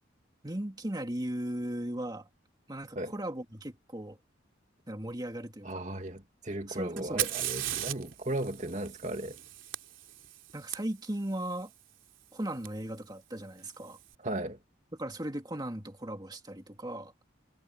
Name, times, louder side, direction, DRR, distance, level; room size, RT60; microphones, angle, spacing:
voice 1, 0.4-2.3 2.7-4.2 4.9-5.8 6.7-7.3 10.5-11.7 12.3-14.0 14.9-17.1, right 1 dB, 20° right, 2.4 m, -37 dB
voice 2, 5.6-9.4 14.2-14.6, right 1 dB, 40° right, 2.3 m, -36 dB
Fire, 7.0-10.8 12.7-12.8 13.6-14.0, right 13 dB, 80° right, 3.6 m, -37 dB
head